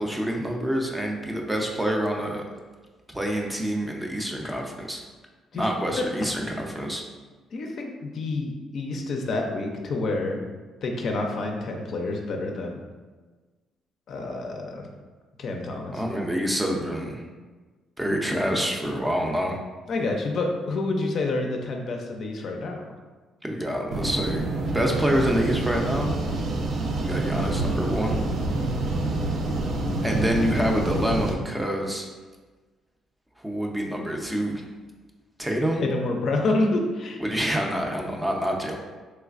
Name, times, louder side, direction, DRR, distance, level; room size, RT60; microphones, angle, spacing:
voice 1, 0.0-2.4 3.1-5.0 5.5-7.0 15.9-17.2 18.0-19.6 23.4-24.5 24.7-26.1 27.0-28.2 30.0-32.1 33.4-34.6 35.4-35.8 37.2-38.8, equal, 10° right, 1 dB, 0.5 m, -27 dB
voice 2, 7.5-10.4 10.8-12.8 14.1-14.9 15.4-16.0 19.9-22.8 28.5-28.9 35.8-37.2, left 2 dB, 60° left, 2 dB, 0.4 m, -28 dB
sound 1, 23.9-31.3, right 2 dB, 60° right, 0.4 m, -27 dB
3.2 x 3.0 x 2.4 m, 1.3 s
cardioid pair, 80°, 0 cm